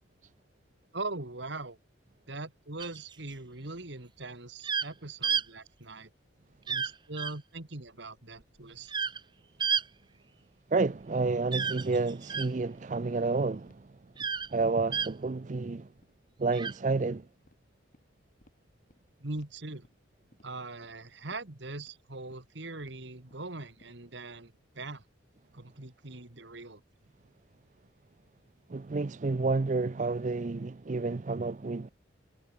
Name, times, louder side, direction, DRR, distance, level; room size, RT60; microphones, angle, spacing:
voice 1, 0.9-1.8 2.3-6.1 6.7-8.9 19.2-19.9 20.4-25.0 25.5-26.8, right 2 dB, 60° right, 2.1 m, -41 dB
sound 1, 2.8-3.3 4.6-4.9 5.2-5.4 6.7-6.9 7.2-7.3 8.9-9.2 9.6-9.8 11.5-12.5 14.2-14.5 14.9-15.1 16.5-16.7, right 6 dB, 20° right, 0.9 m, -30 dB
voice 2, 10.7-13.8 14.5-15.9 16.4-17.2 28.7-31.9, right 3 dB, 40° right, 0.5 m, -30 dB
sound 2, 11.3-11.4 11.7-11.9 12.2-12.3 12.6-12.8 13.2-13.3 13.7-13.8 14.1-14.8 15.1-15.2 15.5-15.7 16.0-16.1 16.5-16.7 17.0-17.1 17.5-17.6 17.9-18.1 18.4-18.5 18.9-19.0 19.4-19.5 19.8-20.0 20.3-20.5 20.8-20.9 21.3-21.4 21.8-21.9 22.3-22.4 22.8-22.9 23.3-23.4 23.8-23.9 24.3-24.5 24.8-25.1, equal, 40° left, 5.7 m, -62 dB
head